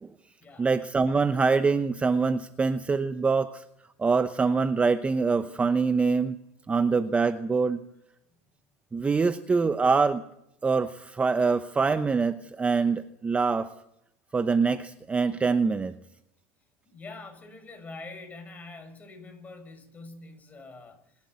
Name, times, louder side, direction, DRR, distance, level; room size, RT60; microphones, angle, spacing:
voice 1, 0.6-3.6 4.0-6.4 6.7-7.8 8.9-10.2 10.6-13.7 14.3-15.9, right 4 dB, 15° right, 11 dB, 0.8 m, -24 dB
voice 2, 16.9-21.0, left 3 dB, 20° left, 5 dB, 6.5 m, -44 dB
27.0 x 12.0 x 9.5 m, 0.81 s
supercardioid pair, 105°, 8 cm